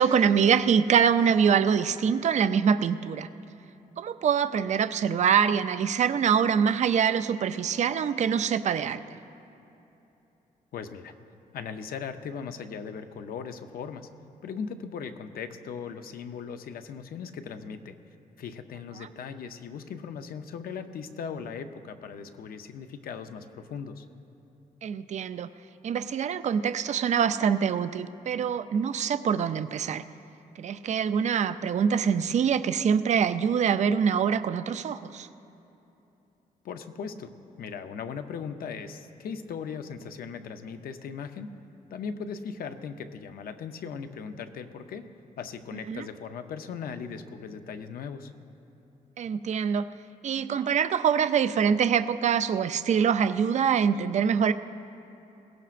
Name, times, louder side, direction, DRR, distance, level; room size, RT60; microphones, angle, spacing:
voice 1, 0.0-3.3 4.0-9.2 24.8-25.5 25.8-30.0 30.6-35.3 45.9-46.1 49.2-49.9 50.2-54.5, right 7 dB, 50° right, 11 dB, 0.4 m, -24 dB
voice 2, 10.7-11.1 11.5-14.1 14.4-17.9 18.4-24.0 36.6-37.3 37.6-41.5 41.9-48.3, left 6 dB, 75° left, 8 dB, 0.7 m, -38 dB
21.5 x 17.0 x 2.5 m, 3.0 s
cardioid pair, 130°, 15 cm